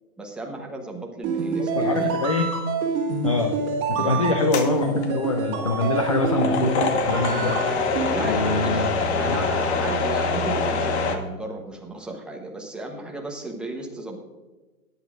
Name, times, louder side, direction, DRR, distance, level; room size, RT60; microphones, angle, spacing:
voice 1, 0.2-2.1 4.0-4.3 8.0-14.2, right 2 dB, ahead, 0 dB, 0.9 m, -34 dB
sound 1, 1.2-8.1, right 5 dB, 30° right, 2.1 m, -27 dB
voice 2, 1.6-2.5 3.2-3.5 3.9-7.6 8.2-8.9 9.3-9.4, left 3 dB, 25° left, 5 dB, 0.4 m, -24 dB
sound 2, 4.5-11.2, left 4 dB, 45° left, 1.4 m, -25 dB
16.5 x 10.5 x 2.5 m, 1.2 s
hypercardioid pair, 140°, 44 cm